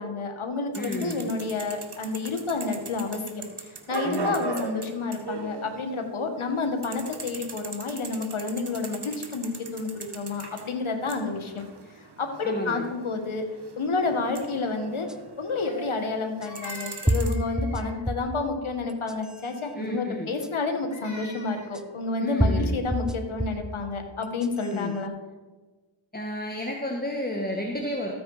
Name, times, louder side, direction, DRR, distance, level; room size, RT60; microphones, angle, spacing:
voice 1, 0.0-11.6 12.2-13.5 13.8-15.1 15.4-25.1, left 3 dB, 80° left, 5 dB, 2.0 m, -30 dB
voice 2, 0.7-1.3 4.0-4.5 12.4-12.9 19.8-20.3 22.2-22.7 24.7-25.0 26.1-28.1, left 1 dB, 20° left, 1 dB, 1.7 m, -32 dB
sound 1, 0.7-6.2 6.4-15.8 16.2-17.3, right 4 dB, 55° right, 1.7 m, -39 dB
sound 2, 15.1-15.2 16.4-16.5 17.1-18.4 18.9-19.5 20.4-20.5 21.7-21.8 22.4-23.7 24.2-24.8, equal, ahead, 0.9 m, -27 dB
Crying sobbing, 15.6-18.2 20.4-21.8, left 1 dB, 35° left, 3.2 m, -43 dB
14.0 x 9.3 x 5.1 m, 1.3 s
cardioid pair, 40°, 48 cm